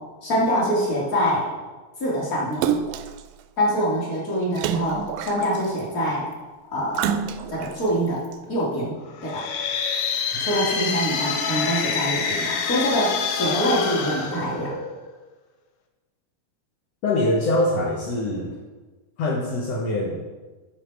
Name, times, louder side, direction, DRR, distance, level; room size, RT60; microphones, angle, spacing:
voice 1, 0.2-1.4 2.0-2.6 3.6-6.2 6.7-7.2 7.5-8.2 8.5-8.9 9.2-9.4 10.4-14.7, equal, 25° left, -6 dB, 2.6 m, -24 dB
Splash splatter, 2.6-3.2 4.6-5.8 6.9-7.7 8.3-8.4, right 9 dB, 80° right, 2.1 m, -26 dB
sound 1, 9.2-15.1, left 6 dB, 90° left, 2.9 m, -27 dB
voice 2, 17.0-18.5 19.2-20.2, left 1 dB, 70° left, -3 dB, 1.5 m, -23 dB
11.0 x 6.4 x 4.8 m, 1.3 s
omnidirectional pair, 4.4 m